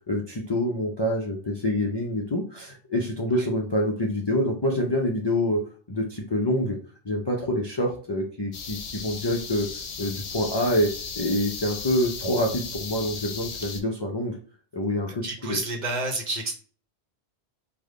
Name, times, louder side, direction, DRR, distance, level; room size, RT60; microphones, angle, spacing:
voice 1, 0.1-5.6 5.9-6.8 7.0-9.7 10.0-14.3 14.7-15.6, left 1 dB, 40° left, -1 dB, 0.4 m, -26 dB
sound 1, 8.5-13.8, left 5 dB, 85° left, 0.9 m, -36 dB
voice 2, 15.2-16.5, right 2 dB, 50° right, 1 dB, 0.7 m, -29 dB
3.4 x 2.1 x 3.6 m, 0.42 s
omnidirectional pair, 1.1 m